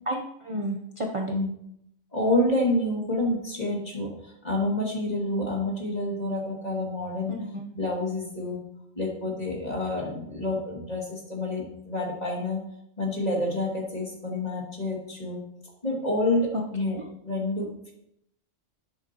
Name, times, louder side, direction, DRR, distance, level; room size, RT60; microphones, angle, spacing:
voice 1, 0.1-1.3 7.3-7.7 16.5-17.1, equal, 30° right, 0 dB, 0.8 m, -32 dB
voice 2, 2.1-7.4 7.7-8.6 8.9-12.6 13.0-15.4 15.8-17.0 17.2-17.9, left 1 dB, 35° left, -2 dB, 2.6 m, -28 dB
10.0 x 9.7 x 3.0 m, 0.78 s
omnidirectional pair, 1.3 m